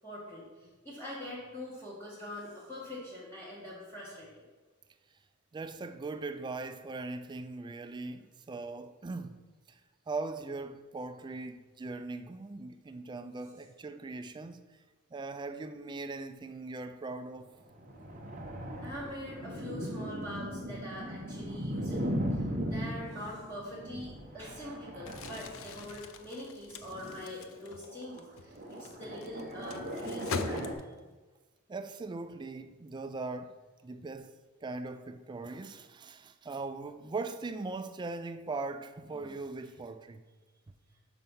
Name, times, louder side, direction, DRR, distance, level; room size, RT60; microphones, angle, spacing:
voice 1, 0.0-4.4 18.8-30.9, left 1 dB, 10° left, 1.4 m, -44 dB
voice 2, 5.5-9.8 10.1-14.8 15.1-17.5 31.7-33.6 33.8-40.2, right 3 dB, 20° right, 0.3 m, -40 dB
sound 1, 17.7-26.0 26.8-28.2 28.5-30.7, equal, 40° right, 0.9 m, -38 dB
Crumpling crinkling, 25.0-31.2, left 5 dB, 65° left, 0.4 m, -43 dB
6.0 x 4.3 x 5.4 m
head